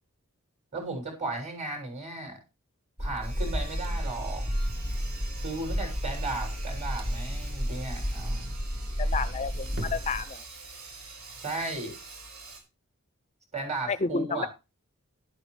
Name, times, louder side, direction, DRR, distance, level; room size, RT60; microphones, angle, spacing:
voice 1, 0.7-2.4 3.0-4.4 5.4-8.6 11.4-11.9 13.5-14.5, right 2 dB, 30° right, 7.1 m, -35 dB
sound 1, 3.0-10.2, equal, 50° right, 2.0 m, -32 dB
Sawing, 3.2-12.6, right 3 dB, 80° right, 6.2 m, -46 dB
voice 2, 9.0-10.4 13.9-14.5, left 4 dB, 30° left, 0.5 m, -31 dB
12.5 x 11.5 x 3.3 m
head